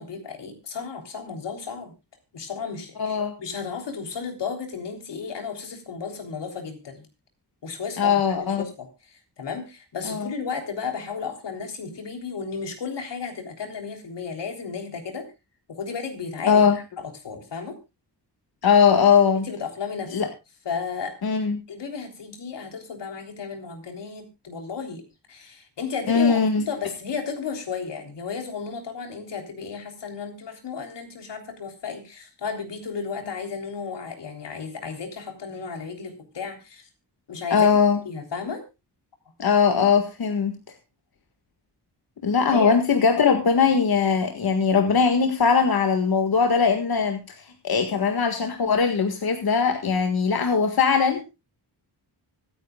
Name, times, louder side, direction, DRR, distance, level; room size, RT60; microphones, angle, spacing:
voice 1, 0.0-1.9 2.3-7.1 7.6-15.3 15.7-16.6 17.0-17.8 19.3-20.3 20.7-21.1 21.7-25.0 25.3-26.4 26.7-36.9 37.3-37.7 38.1-38.6 42.5-42.7, left 5 dB, 90° left, 4 dB, 3.6 m, -34 dB
voice 2, 3.0-3.3 8.0-8.6 10.0-10.3 16.5-16.8 18.6-19.4 20.1-20.3 21.2-21.6 26.1-26.6 37.5-38.0 39.4-40.5 42.2-51.2, left 6 dB, 60° left, 5 dB, 1.8 m, -20 dB
25.0 x 9.4 x 2.3 m, 0.26 s
wide cardioid pair, 115°, 41 cm